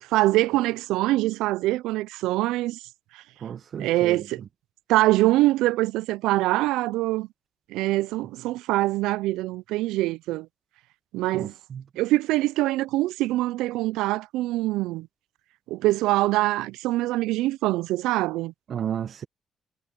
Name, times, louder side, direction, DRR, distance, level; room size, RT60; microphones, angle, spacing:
voice 1, 0.0-2.8 3.1-3.2 3.8-4.4 4.9-7.3 7.7-10.5 11.1-11.5 12.0-15.1 15.7-18.5, right 18 dB, 85° right, 0.3 m, -24 dB
voice 2, 3.4-4.2 11.3-11.8 18.7-19.3, right 8 dB, 60° right, 1.2 m, -32 dB
supercardioid pair, 55°, 0 cm